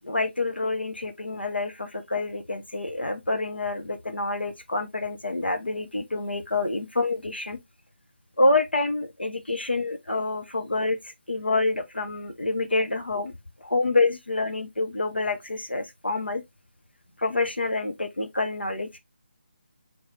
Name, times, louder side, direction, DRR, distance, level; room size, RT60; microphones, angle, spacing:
voice 1, 0.0-7.6 8.4-13.3 13.6-16.4 17.2-18.9, left 2 dB, 80° left, 0.8 m, -27 dB
3.1 x 3.1 x 4.0 m
figure-of-eight pair, 155°, 6 cm